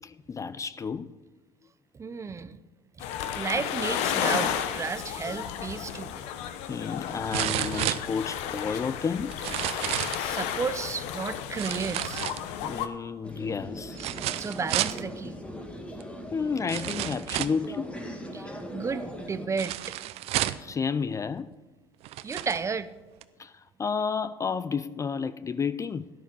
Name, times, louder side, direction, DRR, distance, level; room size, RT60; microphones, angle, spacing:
voice 1, 0.0-1.1 5.4-5.5 6.7-9.4 12.6-14.0 16.3-17.9 20.6-21.6 23.4-26.1, left 5 dB, 30° left, 0.4 m, -31 dB
voice 2, 1.9-2.6 3.3-6.1 10.2-12.2 14.0-15.4 18.3-19.9 22.2-22.9, right 5 dB, 25° right, 0.7 m, -33 dB
sound 1, 3.0-12.9, left 9 dB, 75° left, 0.9 m, -33 dB
sound 2, 5.9-6.0 7.3-8.6 9.3-10.3 11.6-12.7 14.0-15.0 16.0-16.1 16.7-17.7 19.6-20.7 21.5-21.6 22.0-22.6 23.2-23.3, right 14 dB, 65° right, 0.6 m, -31 dB
sound 3, 13.2-19.5, equal, 10° left, 2.0 m, -40 dB
13.0 x 10.5 x 5.4 m
supercardioid pair, 85°, 11 cm